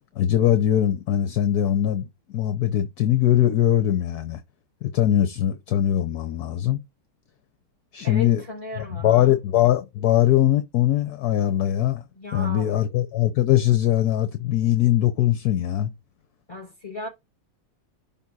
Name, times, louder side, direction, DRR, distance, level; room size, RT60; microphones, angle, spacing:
voice 1, 0.2-4.4 4.8-6.8 7.9-8.4 8.8-12.0 12.3-15.9, left 12 dB, 65° left, 1.2 m, -21 dB
voice 2, 8.0-9.3 12.1-13.0 16.5-17.1, left 3 dB, 15° left, 4.4 m, -36 dB
11.0 x 3.7 x 4.0 m
omnidirectional pair, 2.0 m